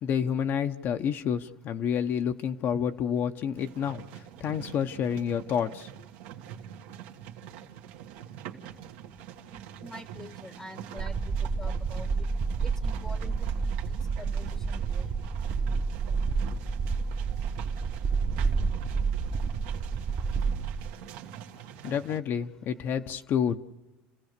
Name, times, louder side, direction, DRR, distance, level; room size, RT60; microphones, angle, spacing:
voice 1, 0.0-5.9 21.8-23.6, left 8 dB, 50° left, 7 dB, 0.9 m, -29 dB
sound 1, 3.6-22.2, right 10 dB, 80° right, 1.7 m, -45 dB
voice 2, 9.5-12.3 12.6-13.3 13.6-15.1, left 1 dB, 10° left, 12 dB, 1.0 m, -46 dB
sound 2, 11.0-20.9, right 5 dB, 40° right, 1.1 m, -29 dB
29.0 x 15.5 x 6.7 m, 1.0 s
supercardioid pair, 115°, 5 cm